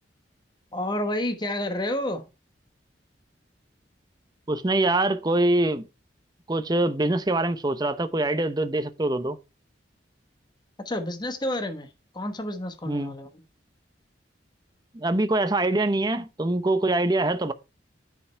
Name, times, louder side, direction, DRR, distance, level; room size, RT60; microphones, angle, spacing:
voice 1, 0.7-2.2 10.8-11.9 12.1-13.3, left 1 dB, 25° left, 1.1 m, -29 dB
voice 2, 4.5-5.8 6.5-9.4 12.8-13.1 14.9-17.5, right 2 dB, 20° right, 0.7 m, -24 dB
9.9 x 5.4 x 4.4 m
head